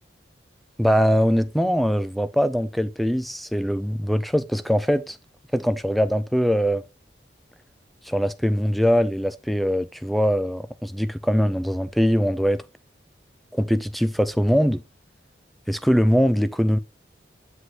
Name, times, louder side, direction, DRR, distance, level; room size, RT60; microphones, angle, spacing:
voice 1, 0.8-5.2 5.5-6.8 8.0-12.6 13.5-14.8 15.7-16.8, equal, ahead, 0.4 m, -22 dB
8.0 x 5.0 x 3.8 m
head